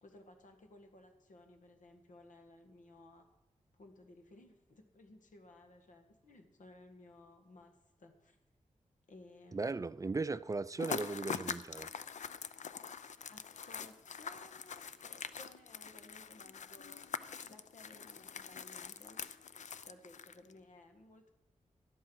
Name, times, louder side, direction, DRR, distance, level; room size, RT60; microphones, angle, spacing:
voice 1, 0.0-3.3 3.7-8.4 9.1-9.8 13.3-17.1 17.5-19.2 19.8-21.3, left 2 dB, 85° left, 1.8 m, -58 dB
voice 2, 9.5-11.9, right 3 dB, 25° right, 0.4 m, -37 dB
sound 1, 10.8-20.5, left 6 dB, 70° left, 0.6 m, -44 dB
12.5 x 11.0 x 6.3 m
wide cardioid pair, 105°, 13 cm